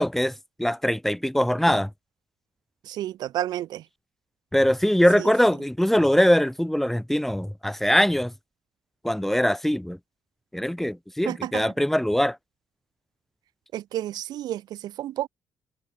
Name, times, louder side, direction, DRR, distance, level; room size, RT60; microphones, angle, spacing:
voice 1, 0.0-1.9 4.5-8.3 9.0-10.0 10.5-12.4, equal, 5° left, 2.4 m, -22 dB
voice 2, 2.8-3.8 5.2-5.3 11.3-11.7 13.7-15.3, right 13 dB, 80° right, 5.5 m, -31 dB
cardioid pair, 85°, 7 cm